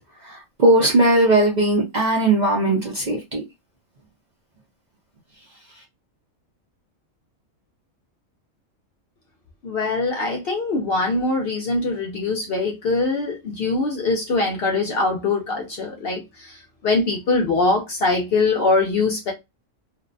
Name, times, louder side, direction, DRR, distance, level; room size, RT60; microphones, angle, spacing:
voice 1, 0.3-3.4, right 2 dB, 50° right, 0.5 m, -18 dB
voice 2, 9.6-16.6 16.8-19.3, left 3 dB, 60° left, 0.6 m, -22 dB
2.6 x 2.0 x 2.5 m
omnidirectional pair, 1.4 m